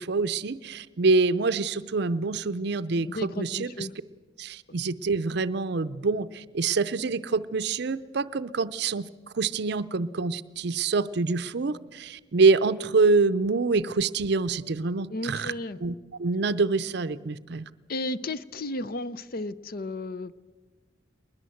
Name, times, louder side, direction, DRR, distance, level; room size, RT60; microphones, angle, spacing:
voice 1, 0.0-3.9 4.4-9.1 9.3-15.5 15.8-17.7, right 4 dB, 60° right, 13 dB, 0.6 m, -26 dB
voice 2, 3.1-3.9 15.1-15.8 17.9-20.3, left 2 dB, 50° left, 15 dB, 0.6 m, -33 dB
20.5 x 20.5 x 7.8 m, 1.4 s
head